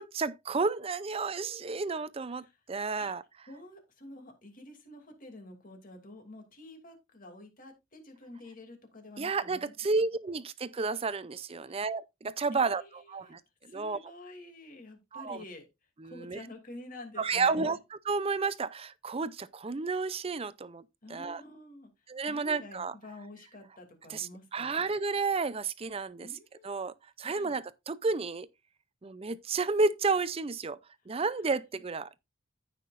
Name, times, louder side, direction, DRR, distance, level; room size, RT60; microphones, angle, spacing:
voice 1, 0.0-3.2 9.2-14.0 15.1-15.4 16.0-16.4 17.2-20.8 21.1-21.4 22.1-22.9 24.1-26.3 26.6-28.5 29.0-30.8 31.1-32.1, right 4 dB, 25° right, 0.5 m, -31 dB
voice 2, 3.5-9.6 11.6-11.8 12.5-13.4 13.6-15.7 16.0-17.8 21.0-24.9 26.2-26.9 27.2-27.5 31.1-31.4, left 2 dB, 40° left, 2.6 m, -49 dB
14.5 x 5.9 x 2.5 m
head